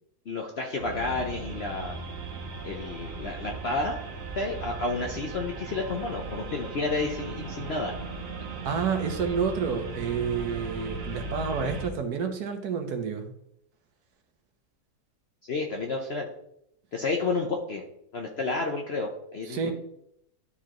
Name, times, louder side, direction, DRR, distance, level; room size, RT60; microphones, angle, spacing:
voice 1, 0.3-1.9 2.6-4.0 4.4-7.9 15.5-16.3 16.9-17.8 18.1-19.7, left 3 dB, 50° left, 1 dB, 0.9 m, -30 dB
sound 1, 0.8-11.9, right 3 dB, 60° right, 1.3 m, -37 dB
voice 2, 8.6-13.3 19.4-19.7, right 6 dB, 85° right, 5 dB, 1.5 m, -29 dB
11.5 x 4.8 x 3.0 m, 0.75 s
omnidirectional pair, 1.6 m